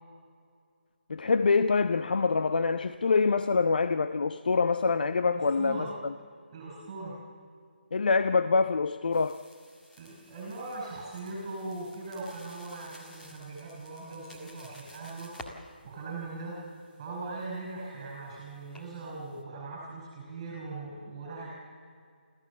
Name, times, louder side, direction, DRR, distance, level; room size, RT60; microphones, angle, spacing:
voice 1, 1.1-6.1 7.9-9.4, left 4 dB, 60° left, 0.6 m, -25 dB
voice 2, 5.3-5.9 6.5-7.2 10.0-15.3 15.8-21.5, right 3 dB, 30° right, 5.1 m, -40 dB
sound 1, 9.1-19.4, left 1 dB, 5° left, 1.8 m, -54 dB
28.5 x 14.0 x 7.1 m
figure-of-eight pair, 155°, 6 cm